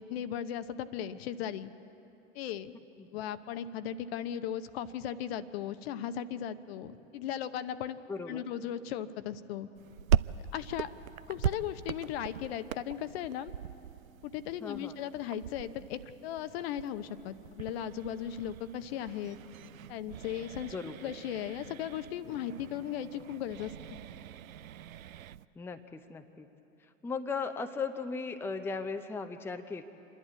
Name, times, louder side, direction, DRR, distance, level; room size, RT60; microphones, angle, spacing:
voice 1, 0.0-1.7 2.3-2.7 3.1-8.0 8.3-9.7 10.5-10.9 11.3-13.5 14.2-19.4 19.9-23.7, left 10 dB, 45° left, 13 dB, 0.8 m, -37 dB
voice 2, 8.1-8.5 14.6-14.9 20.7-20.9 25.6-26.5 27.0-29.8, left 4 dB, 5° left, 8 dB, 0.6 m, -37 dB
sound 1, 9.7-25.5, right 9 dB, 80° right, 0.5 m, -39 dB
27.5 x 11.0 x 8.7 m, 3.0 s
figure-of-eight pair, 90°, 41 cm